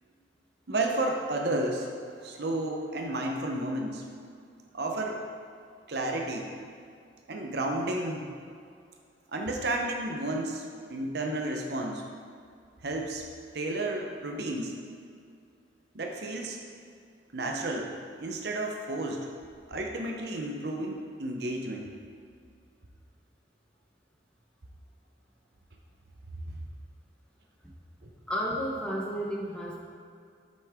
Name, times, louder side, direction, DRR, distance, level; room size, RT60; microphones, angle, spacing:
voice 1, 0.7-1.9 2.2-4.0 4.7-5.2 5.9-6.5 7.3-8.3 9.3-10.6 10.9-12.0 12.8-13.2 13.5-14.7 15.9-16.6 17.3-17.9 18.2-19.3 19.7-21.9 26.5-26.6, right 2 dB, 55° right, 1 dB, 0.8 m, -32 dB
voice 2, 28.3-29.8, equal, 5° left, -3 dB, 1.0 m, -32 dB
8.3 x 6.5 x 3.6 m, 2.3 s
head